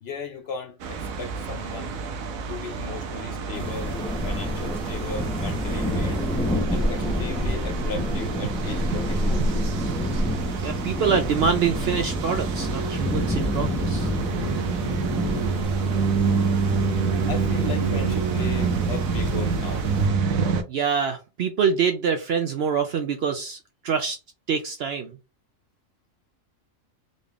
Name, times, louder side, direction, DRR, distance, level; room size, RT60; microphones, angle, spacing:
voice 1, 0.0-1.9 2.5-6.3 6.7-9.4 17.3-19.9, left 5 dB, 60° left, 0.7 m, -36 dB
sound 1, 0.8-20.6, right 5 dB, 85° right, 1.1 m, -28 dB
sound 2, 3.5-20.1, equal, 10° left, 0.3 m, -29 dB
voice 2, 10.6-14.1 20.7-24.2 24.5-25.2, right 6 dB, 65° right, 0.6 m, -25 dB
3.9 x 3.3 x 2.3 m
omnidirectional pair, 1.4 m